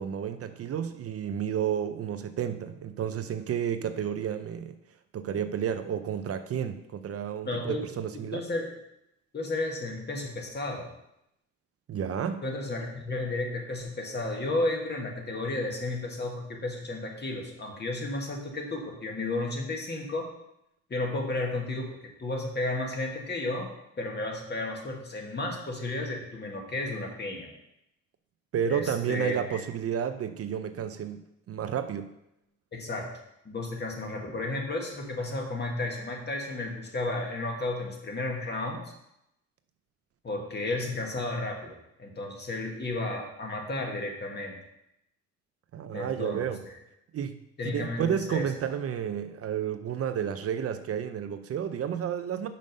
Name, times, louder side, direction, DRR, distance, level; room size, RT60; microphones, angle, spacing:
voice 1, 0.0-4.8 5.1-8.5 11.9-12.4 28.5-31.2 31.5-32.1 45.7-46.6 47.1-47.4 47.7-52.5, right 8 dB, 50° right, 9 dB, 0.5 m, -31 dB
voice 2, 7.4-7.8 8.3-8.7 9.3-10.9 12.4-20.3 20.9-23.7 24.0-27.5 28.7-29.6 32.7-33.1 33.4-38.8 40.2-44.6 45.9-46.4 47.6-48.4, left 2 dB, 35° left, 1 dB, 1.7 m, -33 dB
5.5 x 5.2 x 5.2 m, 0.83 s
cardioid pair, 90°, 30 cm